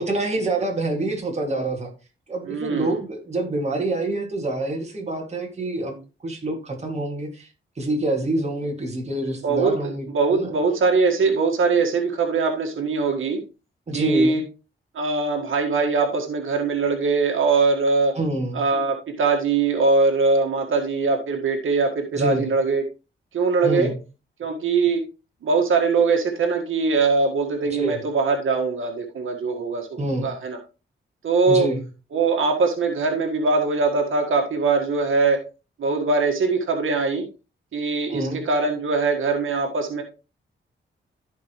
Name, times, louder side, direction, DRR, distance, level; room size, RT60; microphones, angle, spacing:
voice 1, 0.0-1.9 2.3-7.5 7.8-10.5 13.9-14.4 18.1-18.6 22.1-22.5 23.6-24.0 27.6-28.0 30.0-30.4 31.5-31.8 38.1-38.4, right 2 dB, 35° right, 1 dB, 2.5 m, -27 dB
voice 2, 2.5-3.0 9.4-13.4 13.9-14.4 14.9-18.2 18.5-22.8 23.3-23.9 24.4-25.0 25.4-30.6 31.2-31.7 32.1-35.4 35.8-37.3 37.7-40.0, right 4 dB, 90° right, 2 dB, 1.8 m, -22 dB
14.0 x 5.2 x 3.2 m, 0.30 s
wide cardioid pair, 115°, 20 cm